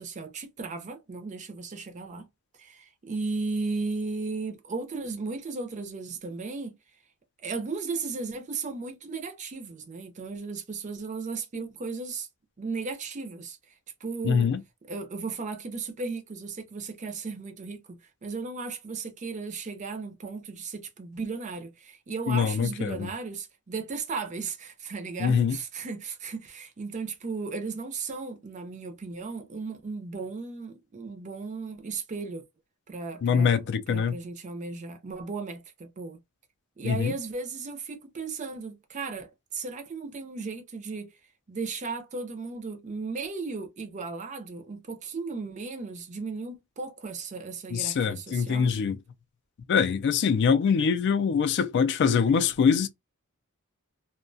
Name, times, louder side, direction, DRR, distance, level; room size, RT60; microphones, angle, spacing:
voice 1, 0.0-2.3 2.6-6.8 7.4-12.3 12.6-13.6 14.0-14.5 14.8-32.4 32.9-36.2 36.8-41.1 41.5-48.7, right 4 dB, 35° right, 0.4 m, -35 dB
voice 2, 14.2-14.6 22.3-23.1 25.2-25.6 33.2-34.2 36.8-37.1 47.7-49.0 49.7-52.9, left 6 dB, 50° left, 0.3 m, -24 dB
2.3 x 2.2 x 2.5 m
head